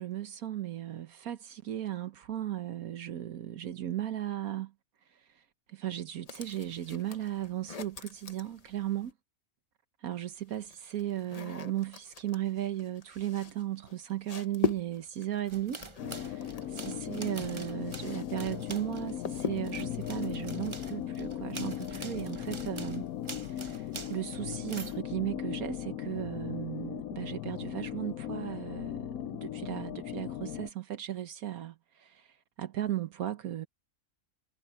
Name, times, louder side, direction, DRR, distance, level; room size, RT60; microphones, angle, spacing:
voice 1, 0.0-4.7 5.1-9.1 10.0-23.1 23.3-33.7, right 12 dB, 80° right, 1.4 m, -36 dB
sound 1, 6.3-9.1 10.1-18.4 18.6-19.9, left 6 dB, 30° left, 0.8 m, -40 dB
sound 2, 15.5-19.2 19.6-25.0, right 4 dB, 25° right, 0.7 m, -46 dB
sound 3, 16.0-30.7, left 11 dB, 80° left, 1.1 m, -38 dB
omnidirectional pair, 1.5 m